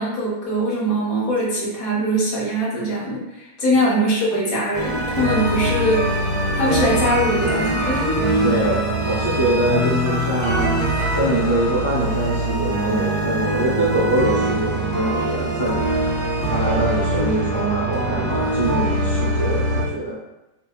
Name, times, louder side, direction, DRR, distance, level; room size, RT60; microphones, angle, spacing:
voice 1, 0.0-6.1 6.5-8.2, equal, 35° left, -7 dB, 1.1 m, -22 dB
sound 1, 4.7-19.8, right 1 dB, 15° right, 0.9 m, -22 dB
voice 2, 8.4-10.7 11.1-15.9 16.5-20.2, right 1 dB, 75° left, -8 dB, 0.5 m, -24 dB
2.6 x 2.2 x 2.3 m, 0.94 s
figure-of-eight pair, 90°, 0 cm